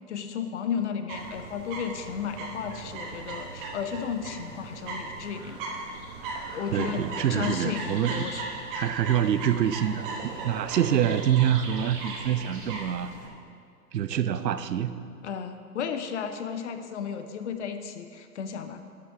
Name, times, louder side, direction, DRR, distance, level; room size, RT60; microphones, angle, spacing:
voice 1, 0.1-5.6 6.5-7.0 7.3-8.4 15.2-18.8, left 7 dB, 45° left, 8 dB, 0.6 m, -33 dB
sound 1, 1.1-13.3, right 3 dB, 30° right, 1.1 m, -38 dB
voice 2, 6.7-8.3 8.7-10.2 10.4-13.1 13.9-15.0, right 10 dB, 75° right, 12 dB, 0.6 m, -26 dB
11.0 x 5.8 x 3.5 m, 2.3 s
hypercardioid pair, 130°, 50 cm